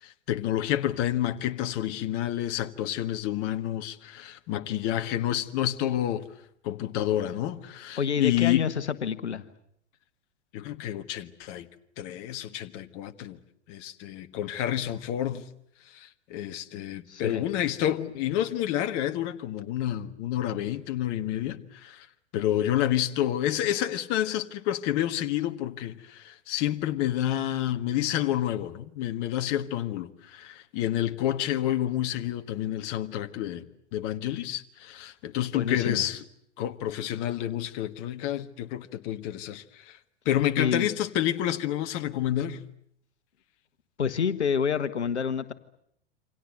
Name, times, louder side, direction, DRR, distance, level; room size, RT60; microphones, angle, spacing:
voice 1, 0.0-6.3 6.6-8.7 10.5-11.7 12.0-13.4 13.7-15.5 15.9-22.1 22.3-33.7 33.9-36.2 36.6-40.0 40.2-42.6, left 12 dB, 35° left, 1.6 m, -29 dB
voice 2, 8.0-9.4 17.1-17.4 35.5-36.0 40.6-40.9 44.0-45.5, left 7 dB, 70° left, 1.5 m, -28 dB
28.5 x 26.0 x 7.8 m
figure-of-eight pair, 100°, 35 cm